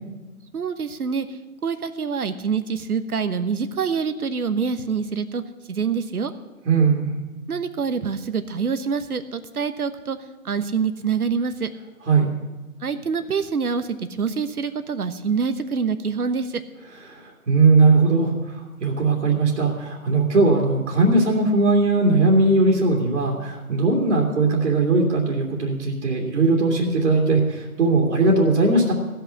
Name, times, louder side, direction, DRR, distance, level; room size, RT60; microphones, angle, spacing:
voice 1, 0.5-5.4 5.7-6.3 7.5-10.2 10.4-11.7 12.8-16.6, right 6 dB, 75° right, 11 dB, 1.2 m, -26 dB
voice 2, 6.7-7.1 12.1-12.3 17.1-28.9, right 3 dB, 55° right, -2 dB, 2.6 m, -19 dB
15.5 x 5.8 x 9.9 m, 1.2 s
hypercardioid pair, 155°, 44 cm